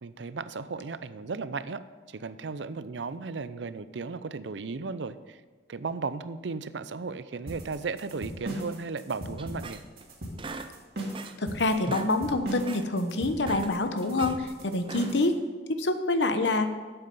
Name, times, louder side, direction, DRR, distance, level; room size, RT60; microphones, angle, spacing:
voice 1, 0.0-1.8 2.1-5.4 5.7-9.8, right 4 dB, 85° right, 14 dB, 0.6 m, -35 dB
sound 1, 7.5-15.3, right 1 dB, 60° right, 2.5 m, -38 dB
sound 2, 9.4-10.1 10.4-11.5 11.8-12.1 12.5-12.9 13.3-14.4 14.8-15.3, right 3 dB, 30° right, 0.5 m, -41 dB
voice 2, 11.4-15.4 15.7-16.7, left 2 dB, 80° left, 8 dB, 1.0 m, -26 dB
12.0 x 8.1 x 5.4 m, 1.5 s
head